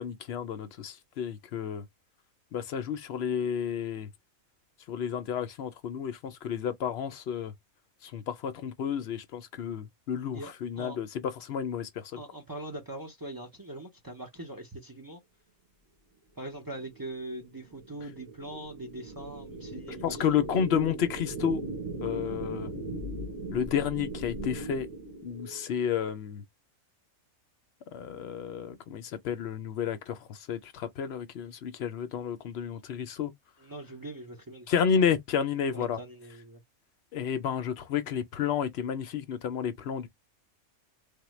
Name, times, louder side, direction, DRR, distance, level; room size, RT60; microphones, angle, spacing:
voice 1, 0.0-1.8 2.5-4.1 4.9-7.5 8.0-12.2 19.9-21.6 22.0-22.7 23.5-24.9 25.2-26.4 27.9-33.3 34.7-36.0 37.1-40.1, left 8 dB, 65° left, 0.7 m, -31 dB
voice 2, 10.3-11.0 12.1-15.2 16.3-20.6 33.6-34.7 35.7-36.6, right 1 dB, 35° right, 0.3 m, -42 dB
sound 1, 16.9-25.7, right 2 dB, 55° right, 1.5 m, -38 dB
3.6 x 2.1 x 3.0 m
omnidirectional pair, 1.5 m